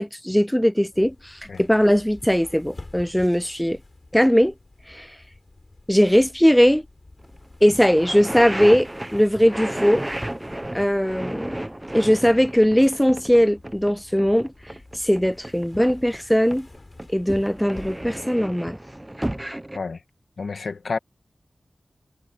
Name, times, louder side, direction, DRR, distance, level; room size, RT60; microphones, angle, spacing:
voice 1, 0.0-3.8 4.1-4.5 4.9-5.1 5.9-6.8 7.6-10.0 10.7-11.6 11.9-14.5 14.9-16.7 17.1-18.8, equal, 5° left, 0.3 m, -19 dB
sound 1, 0.9-18.3, left 2 dB, 40° left, 5.2 m, -48 dB
sound 2, 7.2-7.3 7.7-16.2 16.5-19.8, right 1 dB, 15° right, 0.8 m, -33 dB
voice 2, 20.4-21.0, left 4 dB, 85° left, 1.9 m, -29 dB
wide cardioid pair, 55°, 0 cm